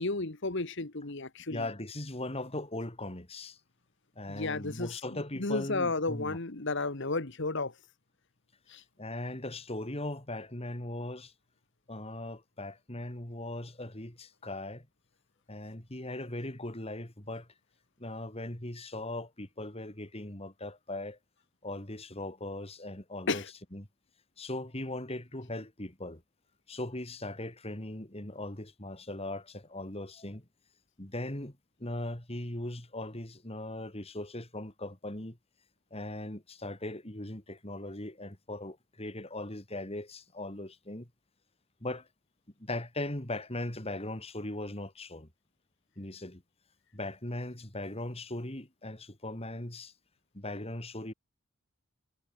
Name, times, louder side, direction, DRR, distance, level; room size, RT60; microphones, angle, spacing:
voice 1, 0.0-1.7 4.3-7.7 8.7-8.8 23.3-23.5, left 3 dB, 60° left, 1.7 m, -33 dB
voice 2, 1.5-3.6 4.1-6.4 9.0-11.3 11.9-14.9 15.5-17.5 18.0-21.2 21.6-23.4 23.7-23.9 24.4-26.2 26.7-30.5 31.0-35.4 35.9-41.1 41.8-42.1 42.6-45.3 46.0-46.4 46.9-49.9 50.3-51.1, left 1 dB, 30° left, 3.2 m, -39 dB
head